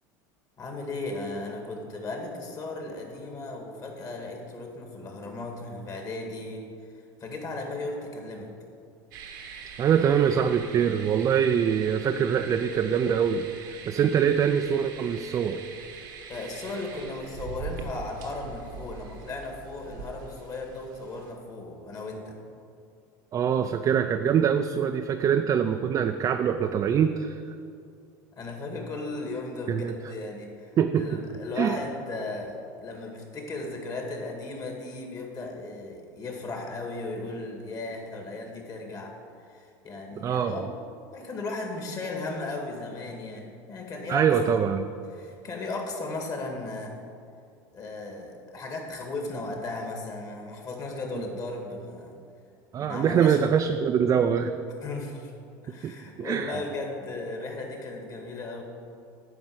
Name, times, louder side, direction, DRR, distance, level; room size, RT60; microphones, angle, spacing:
voice 1, 0.6-6.7 7.2-8.5 16.3-22.4 28.4-39.1 39.4-40.7 41.1-44.6 45.1-47.0 47.7-52.1 52.8-53.4 54.8-55.3 55.6-58.6, left 2 dB, 35° left, 2 dB, 2.0 m, -36 dB
sound 1, 9.1-21.3, right 6 dB, 85° right, 1.4 m, -43 dB
voice 2, 9.8-15.6 23.3-27.4 29.7-29.9 30.8-31.2 31.6-31.8 40.2-40.7 44.1-44.9 51.1-51.2 52.7-54.5 55.8-55.9 56.2-56.6, right 8 dB, 35° right, 6 dB, 0.4 m, -24 dB
9.6 x 4.9 x 7.9 m, 2.4 s
supercardioid pair, 110°, 10 cm